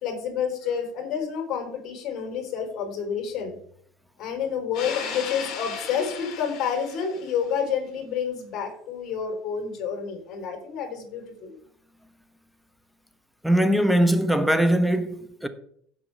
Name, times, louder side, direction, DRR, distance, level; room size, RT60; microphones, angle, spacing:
voice 1, 0.0-3.6 4.2-11.6, left 7 dB, 50° left, 4.1 m, -29 dB
voice 2, 13.4-15.5, right 1 dB, ahead, 1.3 m, -21 dB
16.5 x 6.2 x 3.5 m
hypercardioid pair, 80°, 0 cm